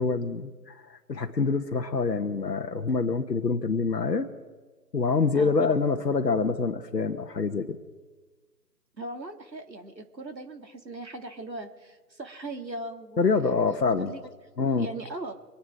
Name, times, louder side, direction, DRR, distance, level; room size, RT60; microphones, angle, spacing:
voice 1, 0.0-4.3 4.9-7.8 13.2-14.1 14.6-14.9, left 4 dB, 75° left, 5 dB, 1.3 m, -26 dB
voice 2, 9.0-14.2 14.7-15.3, right 2 dB, 90° right, 5 dB, 2.1 m, -39 dB
25.5 x 10.0 x 4.7 m, 1.3 s
figure-of-eight pair, 150°, 49 cm